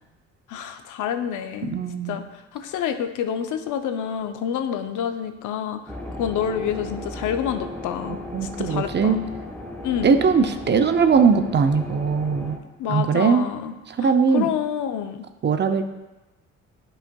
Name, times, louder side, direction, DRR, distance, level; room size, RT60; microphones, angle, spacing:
voice 1, 0.5-1.8 2.1-8.2 8.6-9.2 9.8-10.2 12.8-15.2, left 8 dB, 80° left, 8 dB, 0.6 m, -28 dB
voice 2, 1.6-2.2 8.3-9.2 10.0-12.6 12.9-13.5 13.9-14.5 15.4-15.8, right 5 dB, 35° right, 7 dB, 0.6 m, -20 dB
sound 1, 5.9-12.6, left 1 dB, 5° left, 1.3 m, -36 dB
9.9 x 5.5 x 2.3 m, 1.1 s
cardioid pair, 90°, 30 cm